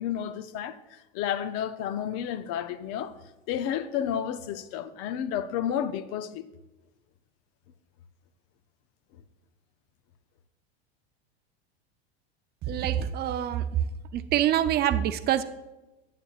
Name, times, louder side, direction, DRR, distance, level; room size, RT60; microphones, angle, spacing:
voice 1, 0.0-3.2 3.5-6.5, left 9 dB, 50° left, 0.7 m, -31 dB
voice 2, 12.7-13.7 14.1-15.4, right 11 dB, 30° right, 0.5 m, -25 dB
11.5 x 9.2 x 2.4 m
hypercardioid pair, 105°, 32 cm